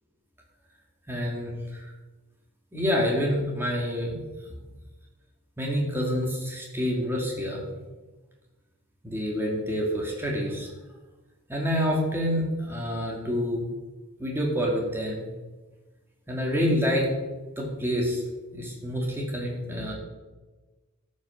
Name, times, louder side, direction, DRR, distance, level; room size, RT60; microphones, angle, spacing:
voice 1, 1.1-1.9 2.7-4.2 5.6-7.6 9.0-10.7 11.5-13.7 14.2-15.3 16.3-17.1 17.6-18.2 18.5-19.9, equal, 10° right, -2 dB, 2.1 m, -27 dB
13.0 x 5.3 x 5.8 m, 1.2 s
head